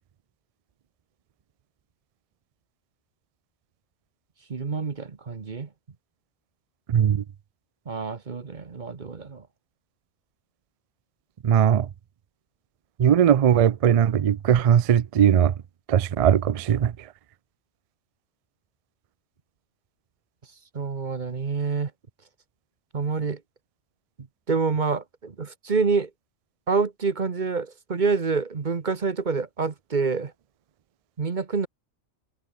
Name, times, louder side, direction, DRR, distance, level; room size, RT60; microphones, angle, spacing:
voice 1, 4.5-5.7 7.9-9.5 20.7-21.9 22.9-23.4 24.2-26.1 26.7-30.3 31.2-31.7, right 4 dB, 40° right, 1.2 m, -27 dB
voice 2, 6.9-7.2 11.4-11.9 13.0-15.5 15.9-16.9, right 9 dB, 60° right, 0.3 m, -19 dB
omnidirectional pair, 1.2 m